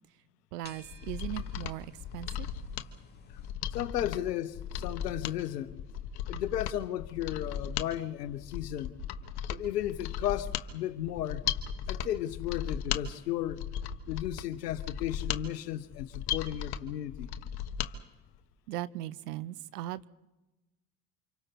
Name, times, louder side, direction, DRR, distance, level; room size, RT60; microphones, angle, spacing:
voice 1, 0.5-2.5 4.0-4.1 18.7-20.1, right 15 dB, 75° right, 0.8 m, -38 dB
sound 1, 0.6-3.5, left 3 dB, 20° left, 3.6 m, -55 dB
Mechanisms, 0.8-17.9 18.3-18.4, left 9 dB, 55° left, 1.4 m, -37 dB
voice 2, 3.7-5.8 6.3-8.9 9.5-11.4 11.9-13.6 14.1-17.3, left 12 dB, 80° left, 1.0 m, -34 dB
29.0 x 26.5 x 4.2 m
hypercardioid pair, 60°, 47 cm